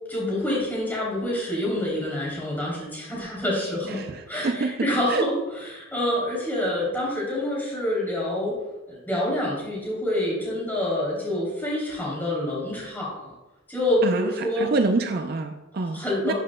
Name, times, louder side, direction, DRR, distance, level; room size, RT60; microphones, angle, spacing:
voice 1, 0.1-4.0 4.3-8.6 8.9-13.3 13.7-14.7 15.9-16.3, left 1 dB, 10° left, -5 dB, 3.0 m, -27 dB
voice 2, 3.9-5.2 14.0-16.3, right 3 dB, 50° right, 6 dB, 0.5 m, -27 dB
12.5 x 7.6 x 2.2 m, 1.1 s
head